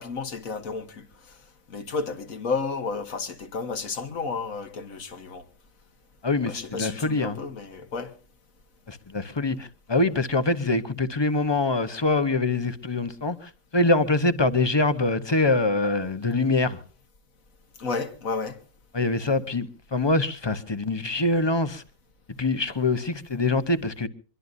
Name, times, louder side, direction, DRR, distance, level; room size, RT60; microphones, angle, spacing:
voice 1, 0.0-1.4 1.7-5.4 6.4-8.1 17.8-18.6, left 4 dB, 80° left, 1.9 m, -32 dB
voice 2, 6.2-7.4 8.9-16.8 18.9-21.8 22.4-24.1, left 2 dB, 20° left, 0.9 m, -24 dB
24.0 x 22.5 x 2.7 m
omnidirectional pair, 1.4 m